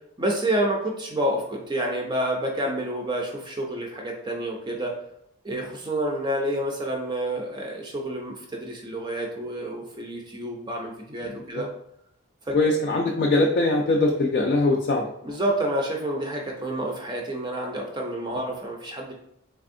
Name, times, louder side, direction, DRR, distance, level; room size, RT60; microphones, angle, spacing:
voice 1, 0.2-4.9 5.4-11.7 12.4-12.6 15.2-19.1, right 1 dB, 20° right, 0 dB, 0.4 m, -28 dB
voice 2, 11.3-11.6 12.5-15.1, left 2 dB, 45° left, 0 dB, 0.3 m, -22 dB
3.4 x 3.3 x 2.6 m, 0.77 s
head